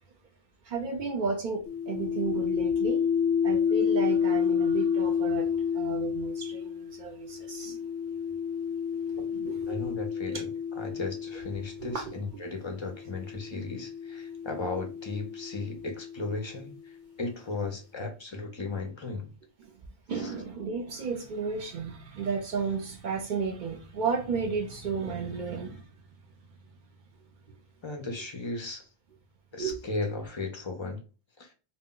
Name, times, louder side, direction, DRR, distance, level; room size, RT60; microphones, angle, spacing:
voice 1, 0.7-7.8 9.2-9.9 10.3-10.4 11.8-12.1 19.6-19.7 20.1-25.8 29.6-29.8, right 5 dB, 60° right, 0.6 m, -33 dB
sound 1, 1.7-12.0 12.9-16.7, left 7 dB, 85° left, 0.9 m, -30 dB
voice 2, 9.7-10.5 10.7-19.3 20.1-20.3 27.8-28.9 29.5-31.0 31.4-31.5, left 3 dB, 45° left, 0.4 m, -36 dB
2.1 x 2.0 x 3.6 m
omnidirectional pair, 1.1 m